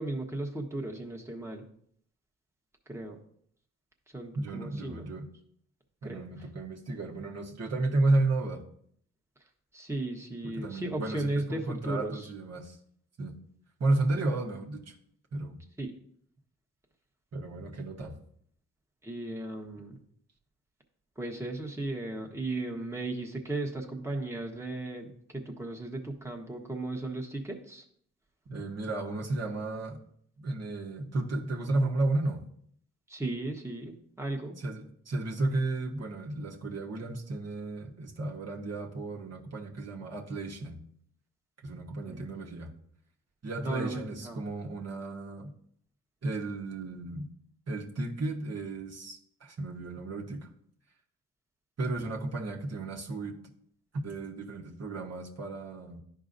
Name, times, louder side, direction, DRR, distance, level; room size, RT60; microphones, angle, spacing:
voice 1, 0.0-1.7 2.9-3.2 4.1-5.0 6.0-6.3 9.7-12.3 15.8-15.9 19.0-20.0 21.2-27.8 33.1-34.6 42.0-42.3 43.6-44.4, right 2 dB, 10° right, 0 dB, 1.2 m, -36 dB
voice 2, 4.3-5.3 6.0-8.6 10.4-12.8 13.2-13.3 13.8-14.9 15.3-15.6 17.3-18.1 28.5-30.0 30.4-32.4 34.6-40.9 41.6-42.7 43.4-45.5 46.2-47.3 47.7-50.5 51.8-53.4 54.0-56.0, right 2 dB, 50° right, -1 dB, 1.3 m, -33 dB
11.0 x 4.8 x 2.6 m, 0.66 s
cardioid pair, 55°, 33 cm